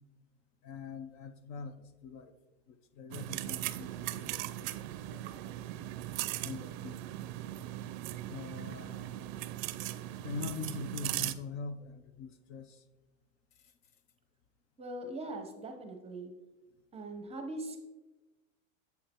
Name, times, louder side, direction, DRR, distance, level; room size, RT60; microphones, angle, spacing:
voice 1, 0.6-2.3 2.7-5.6 6.4-7.1 8.3-9.3 10.2-12.8, left 5 dB, 55° left, 11 dB, 0.7 m, -44 dB
sound 1, 3.1-11.3, right 14 dB, 55° right, 0.5 m, -39 dB
voice 2, 14.8-16.3 16.9-17.8, right 1 dB, 15° right, 5 dB, 0.8 m, -41 dB
8.5 x 7.7 x 2.9 m, 1.1 s
supercardioid pair, 130°, 41 cm